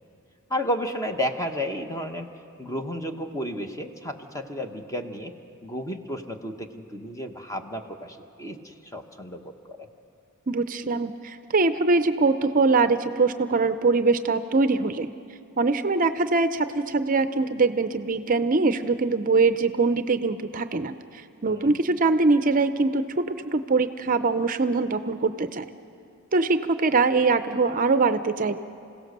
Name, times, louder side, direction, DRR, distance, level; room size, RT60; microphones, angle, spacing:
voice 1, 0.5-2.3 2.6-5.3 5.6-9.9 21.5-21.8, equal, 15° left, 5 dB, 1.1 m, -32 dB
voice 2, 10.5-15.1 15.6-21.0 21.4-25.7 26.3-28.6, right 3 dB, 40° right, 10 dB, 0.5 m, -23 dB
27.5 x 16.5 x 6.7 m, 2.6 s
head